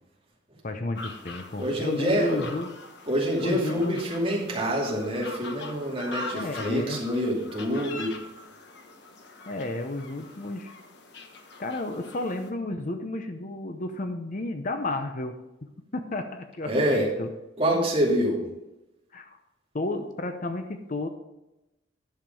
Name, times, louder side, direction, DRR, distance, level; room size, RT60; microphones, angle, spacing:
voice 1, 0.6-2.7 3.4-4.0 6.3-7.0 9.5-10.7 11.6-15.4 15.9-17.3 17.7-17.9 19.1-19.4 19.7-21.1, left 2 dB, 45° left, 7 dB, 0.7 m, -32 dB
sound 1, 1.0-12.5, left 2 dB, 60° left, 1.2 m, -43 dB
voice 2, 1.6-2.5 3.1-8.1 16.7-17.1 17.6-18.4, equal, 30° right, -3 dB, 2.5 m, -26 dB
10.5 x 6.7 x 5.4 m, 0.95 s
head